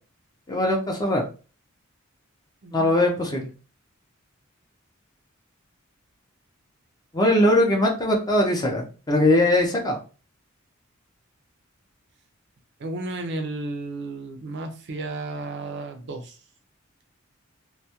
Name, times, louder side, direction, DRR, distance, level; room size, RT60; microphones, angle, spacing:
voice 1, 0.5-1.2 2.7-3.5 7.1-10.0, left 1 dB, 20° left, 1 dB, 0.5 m, -21 dB
voice 2, 2.6-2.9 12.8-16.4, right 2 dB, 55° right, 6 dB, 0.4 m, -33 dB
2.2 x 2.1 x 2.8 m, 0.35 s
head